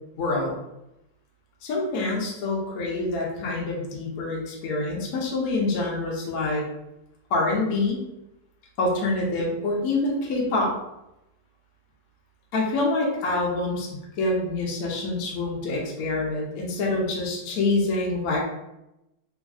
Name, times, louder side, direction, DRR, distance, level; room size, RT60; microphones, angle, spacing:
voice 1, 0.2-0.5 1.6-6.7 7.3-8.0 8.8-10.7 12.5-13.9 14.2-18.4, left 2 dB, 65° left, -3 dB, 0.9 m, -26 dB
3.1 x 2.6 x 2.3 m, 0.90 s
omnidirectional pair, 2.0 m